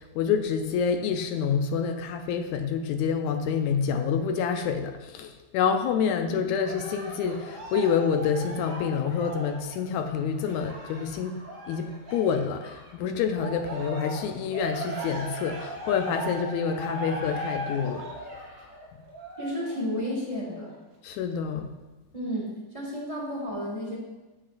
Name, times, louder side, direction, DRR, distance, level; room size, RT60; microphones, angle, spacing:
voice 1, 0.0-11.4 11.7-18.1 21.0-21.7, left 6 dB, 80° left, 7 dB, 1.9 m, -27 dB
Cheering, 6.6-12.9 13.3-19.9 20.5-20.6, right 1 dB, 30° right, 2.0 m, -38 dB
voice 2, 19.4-20.7 22.1-24.0, equal, 15° right, -5 dB, 1.1 m, -32 dB
11.5 x 7.4 x 2.5 m, 1.1 s
omnidirectional pair, 3.5 m